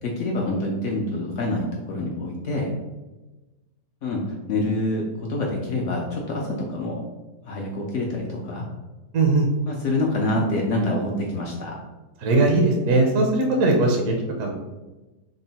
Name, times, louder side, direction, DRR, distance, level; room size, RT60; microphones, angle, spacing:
voice 1, 0.0-2.7 4.0-4.2 4.5-6.9 7.4-8.7 9.7-11.8, left 1 dB, 75° left, -1 dB, 0.7 m, -26 dB
voice 2, 9.1-9.5 12.2-14.5, right 2 dB, 65° right, 1 dB, 0.8 m, -20 dB
3.6 x 2.0 x 3.9 m, 1.1 s
omnidirectional pair, 1.8 m